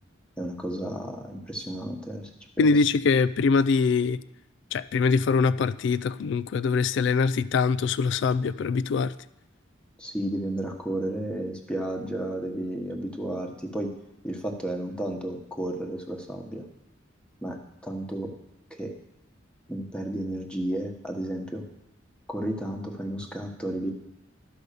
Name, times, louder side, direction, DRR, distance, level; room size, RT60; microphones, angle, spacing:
voice 1, 0.4-2.3 2.6-2.7 10.0-13.9 14.2-16.6 17.4-18.3 18.8-18.9 19.7-21.6 22.3-23.9, right 1 dB, 5° left, 2 dB, 1.1 m, -32 dB
voice 2, 2.6-4.2 4.7-9.1, left 4 dB, 60° left, 17 dB, 0.3 m, -23 dB
12.5 x 5.3 x 6.7 m, 0.87 s
head